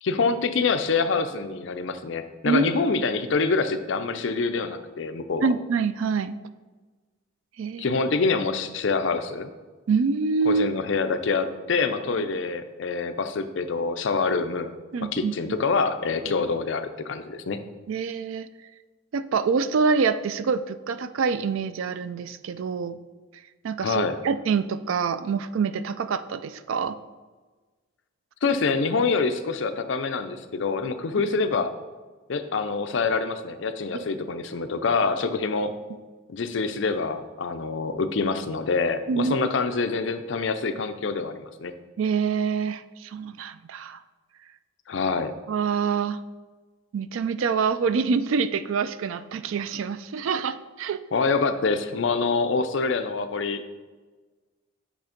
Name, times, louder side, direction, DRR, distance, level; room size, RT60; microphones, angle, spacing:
voice 1, 0.0-5.5 7.8-9.5 10.5-14.7 15.1-17.6 23.8-24.2 28.4-31.7 32.3-35.7 36.3-41.7 44.9-45.3 51.1-53.7, left 4 dB, 60° left, 9 dB, 0.5 m, -26 dB
voice 2, 5.4-6.3 7.6-7.9 9.9-10.7 14.9-15.3 17.9-18.5 19.1-23.0 23.6-27.0 33.9-34.1 39.1-39.4 42.0-44.0 45.5-46.2 46.9-51.0, right 5 dB, 75° right, 13 dB, 0.4 m, -26 dB
8.6 x 3.3 x 5.1 m, 1.3 s
head